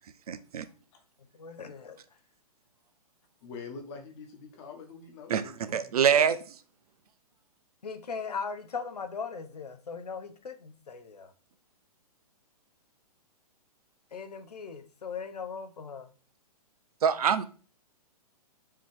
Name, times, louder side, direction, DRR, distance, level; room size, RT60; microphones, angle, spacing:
voice 1, 0.3-0.7 5.3-5.4 5.7-6.4 17.0-17.4, right 7 dB, 70° right, 13 dB, 0.5 m, -24 dB
voice 2, 1.3-2.0 7.8-11.3 14.1-16.1, left 5 dB, 80° left, 8 dB, 0.8 m, -39 dB
voice 3, 3.4-5.9, left 4 dB, 45° left, 4 dB, 1.3 m, -45 dB
4.7 x 3.0 x 3.6 m, 0.38 s
hypercardioid pair, 125°, 20 cm